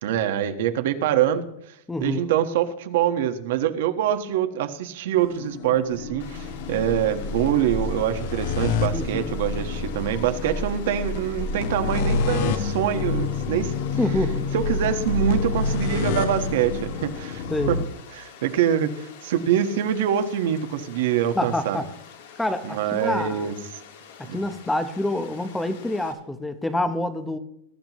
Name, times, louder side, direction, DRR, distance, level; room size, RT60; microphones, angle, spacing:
voice 1, 0.0-1.5 2.0-13.7 14.5-17.8 18.1-21.8 22.6-23.5 24.2-24.4, right 10 dB, 65° right, 7 dB, 1.5 m, -24 dB
voice 2, 1.9-2.3 8.9-9.4 14.0-14.4 17.5-17.8 21.3-21.8 22.4-23.5 24.3-27.4, left 1 dB, 5° left, 10 dB, 0.9 m, -27 dB
sound 1, 5.2-17.8, left 4 dB, 50° left, 1.3 m, -28 dB
Water, 6.2-26.1, left 7 dB, 80° left, 3.4 m, -47 dB
21.0 x 12.5 x 3.1 m, 0.76 s
supercardioid pair, 170°, 0 cm